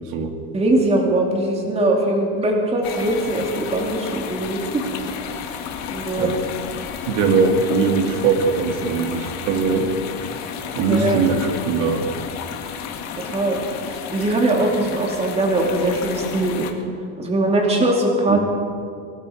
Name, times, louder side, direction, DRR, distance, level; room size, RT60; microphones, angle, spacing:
voice 1, 0.5-4.9 5.9-6.3 10.8-11.2 13.2-16.7 17.2-18.4, right 1 dB, 20° right, 0 dB, 2.7 m, -21 dB
sound 1, 2.8-16.7, left 7 dB, 55° left, 1.8 m, -32 dB
voice 2, 7.1-9.9 10.8-12.1 18.3-18.4, right 4 dB, 70° right, 4 dB, 2.4 m, -20 dB
21.0 x 12.5 x 5.1 m, 2.3 s
cardioid pair, 140°, 33 cm